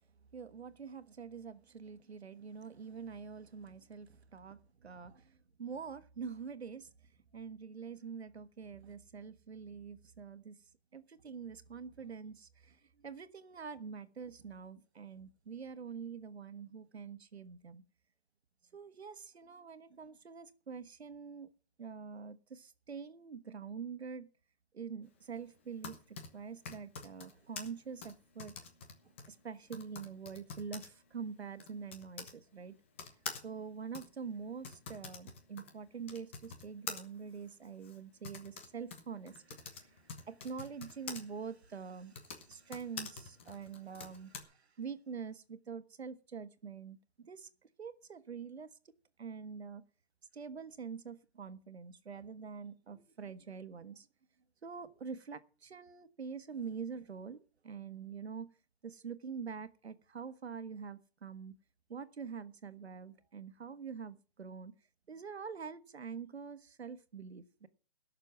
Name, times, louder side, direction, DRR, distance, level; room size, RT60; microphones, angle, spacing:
voice 1, 0.3-17.8 18.7-21.5 21.8-24.3 24.7-28.5 29.3-32.7 33.4-48.9 49.2-49.8 50.3-54.1 54.6-58.5 58.8-61.5 61.9-64.7 65.1-67.7, right 6 dB, 85° right, 1.5 m, -45 dB
Typing, 25.5-32.4 33.0-41.2 42.0-44.4, left 5 dB, 10° left, 0.7 m, -48 dB
17.0 x 6.7 x 6.2 m
hypercardioid pair, 170°, 32 cm